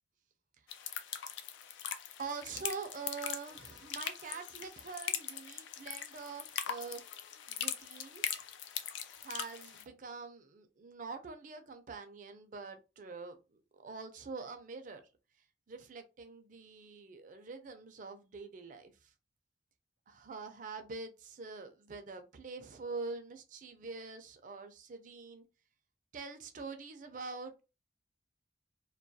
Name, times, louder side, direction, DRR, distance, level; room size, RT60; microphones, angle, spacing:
sound 1, 0.7-9.8, left 9 dB, 85° left, 0.4 m, -41 dB
voice 1, 2.2-7.0 7.5-8.4 9.2-13.4 13.8-15.0 15.7-19.1 20.1-25.4 26.1-27.5, right 4 dB, 45° right, 0.4 m, -45 dB
2.3 x 2.2 x 2.6 m
head